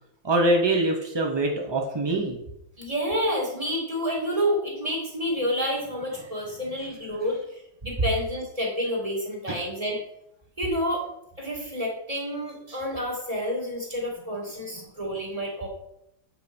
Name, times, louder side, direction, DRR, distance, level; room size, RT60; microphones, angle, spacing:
voice 1, 0.2-2.4 9.5-9.6, right 2 dB, 40° right, 0 dB, 0.3 m, -24 dB
voice 2, 2.8-10.0 10.6-11.1 11.4-15.7, equal, 15° right, -1 dB, 2.2 m, -29 dB
8.2 x 5.6 x 5.3 m, 0.80 s
omnidirectional pair, 2.2 m